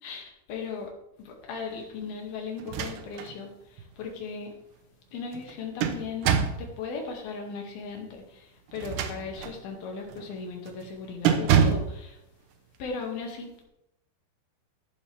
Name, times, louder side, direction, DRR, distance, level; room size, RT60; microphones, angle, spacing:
voice 1, 0.0-0.9 1.2-4.6 5.1-12.2 12.8-13.6, left 5 dB, 60° left, 1 dB, 3.8 m, -37 dB
sound 1, 2.6-3.3 3.8-3.9 5.3-6.7 8.7-9.6 10.1-10.3 10.7-10.9 11.3-12.0, right 7 dB, 75° right, 2.6 m, -26 dB
14.5 x 11.0 x 3.5 m, 0.83 s
omnidirectional pair, 5.5 m